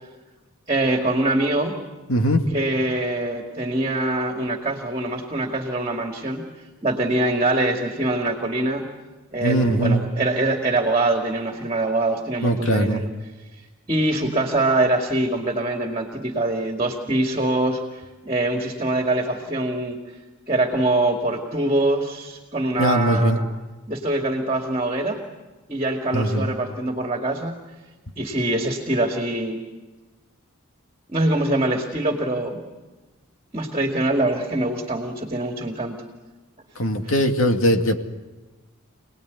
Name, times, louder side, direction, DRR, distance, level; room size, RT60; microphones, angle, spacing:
voice 1, 0.7-1.8 2.5-6.4 6.8-8.8 9.3-13.1 13.9-20.0 20.5-23.4 23.9-25.2 25.7-27.5 28.2-29.6 31.1-32.6 33.5-36.0, right 2 dB, 25° right, 2 dB, 2.3 m, -24 dB
voice 2, 2.1-2.4 9.4-10.0 12.4-13.0 22.8-23.4 26.1-26.5 36.8-38.0, equal, 70° left, 4 dB, 2.3 m, -20 dB
27.5 x 19.5 x 9.6 m, 1.2 s
head